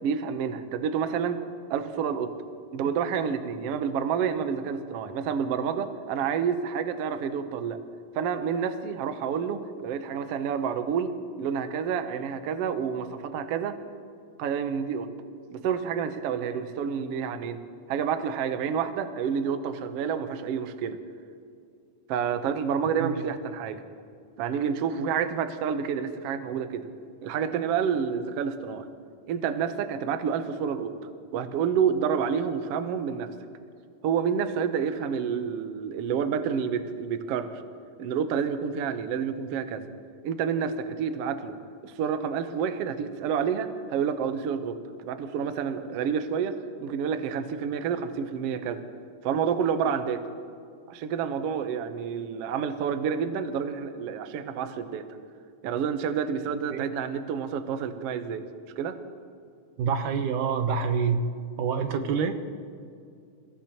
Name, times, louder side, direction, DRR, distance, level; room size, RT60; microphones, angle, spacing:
voice 1, 0.0-1.4 1.7-2.3 2.7-7.8 8.1-13.8 14.4-15.1 15.5-17.6 17.9-21.0 22.1-23.8 24.4-26.9 27.2-28.9 29.3-30.9 31.3-33.3 34.0-37.6 38.0-39.8 40.2-41.5 41.8-48.8 49.2-50.2 50.9-55.1 55.6-58.4 58.8-59.0, right 7 dB, 65° right, 8 dB, 1.6 m, -29 dB
voice 2, 59.8-61.2 61.6-62.4, right 6 dB, 85° right, 7 dB, 2.5 m, -26 dB
29.0 x 16.5 x 3.0 m, 2.4 s
omnidirectional pair, 3.5 m